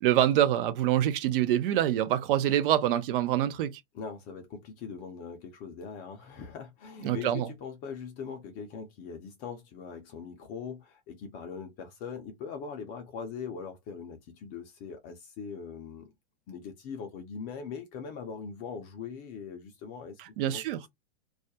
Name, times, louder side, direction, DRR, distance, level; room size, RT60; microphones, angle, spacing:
voice 1, 0.0-3.7 7.0-7.5 20.4-20.8, right 12 dB, 55° right, 0.5 m, -25 dB
voice 2, 3.9-16.1 16.5-20.2 20.5-20.7, left 6 dB, 30° left, 0.4 m, -41 dB
2.3 x 2.1 x 2.7 m
hypercardioid pair, 135°, 32 cm